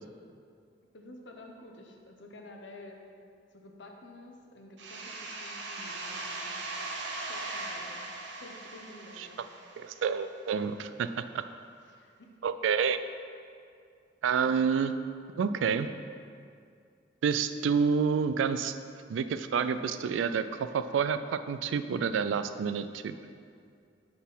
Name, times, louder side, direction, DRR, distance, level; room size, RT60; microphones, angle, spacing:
voice 1, 0.9-3.0 3.5-6.6 7.1-8.1 8.4-9.4 11.9-12.3, left 1 dB, 70° left, 2 dB, 0.8 m, -50 dB
sound 1, 4.8-10.3, right 2 dB, 70° right, 0.8 m, -39 dB
voice 2, 9.8-11.4 12.4-13.0 14.2-14.9 15.4-15.9 17.2-18.7 19.1-23.1, right 6 dB, 85° right, 12 dB, 0.3 m, -28 dB
6.2 x 4.0 x 5.4 m, 2.3 s
head